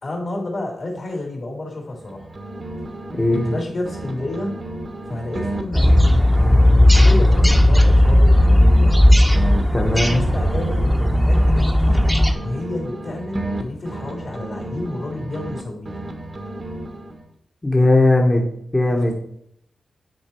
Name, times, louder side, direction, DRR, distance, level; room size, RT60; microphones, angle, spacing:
voice 1, 0.0-2.2 3.3-4.5 5.1-6.2 6.9-9.0 9.8-12.0 12.4-16.0, left 2 dB, 60° left, 0 dB, 3.4 m, -30 dB
sound 1, 1.9-3.6 3.9-7.6 7.9-11.6 11.9-15.6 15.9-17.3, right 2 dB, 45° right, 1.1 m, -32 dB
voice 2, 3.1-3.5 9.7-10.2 17.6-18.4 18.7-19.1, left 2 dB, 25° left, 0 dB, 1.3 m, -17 dB
sound 2, 5.7-12.3, left 1 dB, ahead, 1.0 m, -14 dB
9.4 x 4.4 x 4.5 m, 0.72 s
cardioid pair, 60°, 0 cm